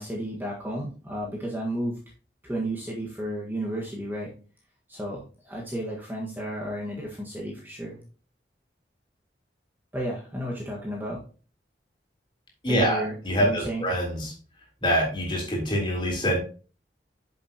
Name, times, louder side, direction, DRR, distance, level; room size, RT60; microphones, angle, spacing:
voice 1, 0.0-2.0 2.4-4.3 4.9-8.0 9.9-11.2 12.7-13.8, right 1 dB, 10° right, -3 dB, 1.5 m, -33 dB
voice 2, 12.6-14.3 14.8-16.4, equal, 25° left, -1 dB, 3.3 m, -25 dB
9.3 x 7.0 x 2.9 m, 0.37 s
head